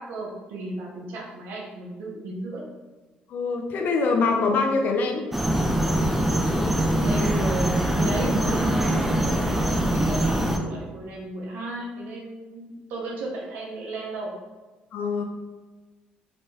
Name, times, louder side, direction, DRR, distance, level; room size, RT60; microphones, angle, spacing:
voice 1, 0.0-2.6 7.0-14.3, right 2 dB, 80° right, -2 dB, 0.7 m, -33 dB
voice 2, 3.3-5.3 14.9-15.2, left 4 dB, 60° left, 4 dB, 0.5 m, -24 dB
sound 1, 5.3-10.6, right 1 dB, 5° right, 0.3 m, -23 dB
2.9 x 2.1 x 3.1 m, 1.2 s
cardioid pair, 100°, 3 cm